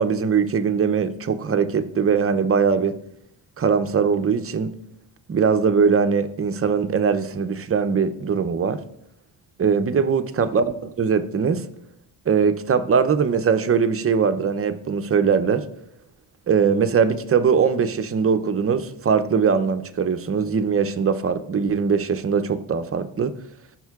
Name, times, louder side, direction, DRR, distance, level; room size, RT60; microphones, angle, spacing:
voice 1, 0.0-3.0 3.6-4.7 5.3-8.8 9.6-11.6 12.3-15.6 16.5-23.3, right 6 dB, 30° right, 10 dB, 0.6 m, -21 dB
14.0 x 5.6 x 2.4 m, 0.76 s
cardioid pair, 95°, 44 cm